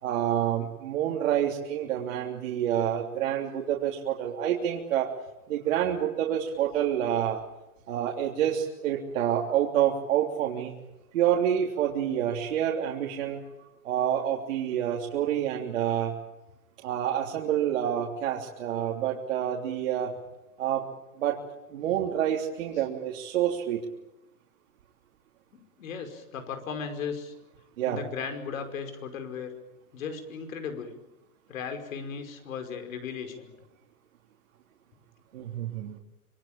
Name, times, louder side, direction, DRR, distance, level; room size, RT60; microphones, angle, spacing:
voice 1, 0.0-5.1 5.5-7.4 7.9-10.7 11.1-13.4 13.8-16.1 16.8-20.1 20.6-20.9 21.2-21.4 21.7-23.8 27.8-28.0 35.3-36.0, right 10 dB, 60° right, -2 dB, 3.4 m, -28 dB
voice 2, 25.5-27.3 27.9-29.5 29.9-31.0 31.5-33.5, left 6 dB, 65° left, 7 dB, 5.4 m, -36 dB
26.5 x 22.5 x 8.9 m, 0.93 s
supercardioid pair, 165°, 44 cm